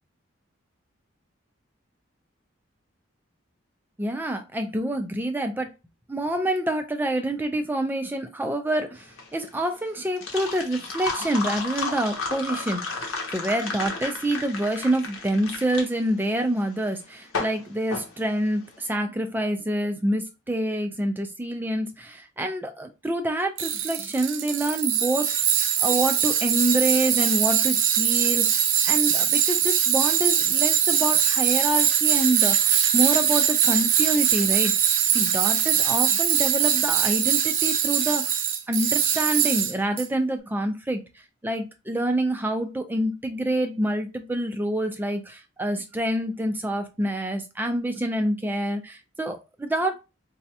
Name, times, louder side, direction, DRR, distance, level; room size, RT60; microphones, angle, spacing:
voice 1, 4.0-5.7 6.1-25.5 25.8-34.7 35.1-41.0 41.4-50.0, right 1 dB, 10° right, 5 dB, 0.4 m, -27 dB
sound 1, 9.0-18.8, left 3 dB, 90° left, 0.9 m, -33 dB
Tools, 23.6-40.0, right 9 dB, 75° right, 0.5 m, -22 dB
4.0 x 2.3 x 2.8 m, 0.27 s
head